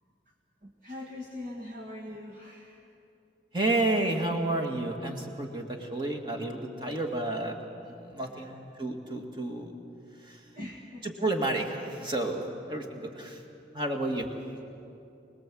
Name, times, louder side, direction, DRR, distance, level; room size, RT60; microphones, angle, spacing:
voice 1, 0.6-2.9 3.8-3.9 8.2-8.6 10.5-11.2, left 1 dB, 50° right, -1 dB, 1.8 m, -42 dB
voice 2, 3.5-7.6 7.8-9.7 10.2-10.5 11.0-13.4 13.7-14.3, right 2 dB, 25° right, 2 dB, 2.1 m, -31 dB
25.5 x 20.0 x 7.7 m, 2.7 s
head